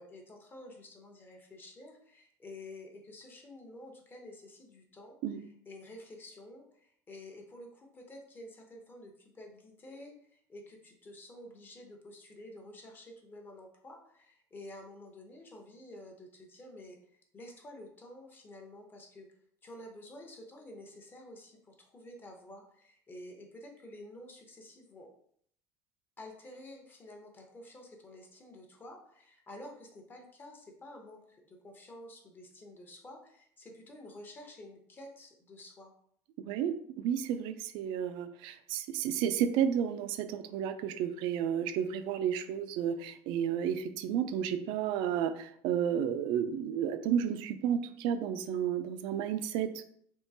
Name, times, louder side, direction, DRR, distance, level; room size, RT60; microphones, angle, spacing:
voice 1, 0.0-19.3 19.6-25.1 26.2-35.9, left 1 dB, 25° left, 2 dB, 0.7 m, -50 dB
voice 2, 36.5-49.8, right 9 dB, 70° right, 10 dB, 0.4 m, -32 dB
3.6 x 2.9 x 2.7 m, 0.65 s
cardioid pair, 135°, 8 cm